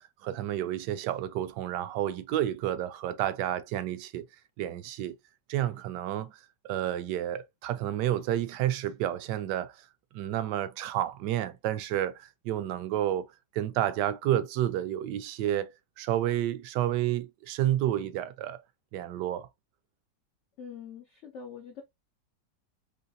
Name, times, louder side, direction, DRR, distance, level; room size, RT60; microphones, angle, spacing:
voice 1, 0.0-4.3 4.6-5.2 5.5-6.4 6.7-9.7 10.1-13.3 13.5-18.6 18.9-19.5, right 12 dB, 75° right, 1.1 m, -30 dB
voice 2, 20.6-21.8, left 7 dB, 85° left, 0.6 m, -44 dB
4.0 x 3.1 x 2.6 m
omnidirectional pair, 2.0 m